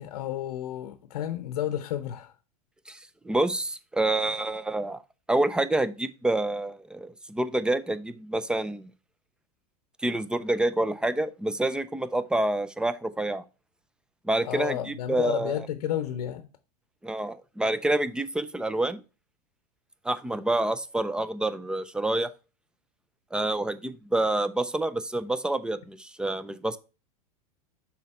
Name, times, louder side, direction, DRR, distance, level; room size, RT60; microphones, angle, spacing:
voice 1, 0.0-2.3 14.4-16.5, left 11 dB, 80° left, 0.7 m, -31 dB
voice 2, 3.2-5.0 5.3-8.9 10.0-13.4 14.2-15.5 17.0-19.0 20.0-22.3 23.3-26.8, right 2 dB, 5° right, 0.3 m, -27 dB
6.1 x 4.2 x 4.2 m
supercardioid pair, 120°, 20 cm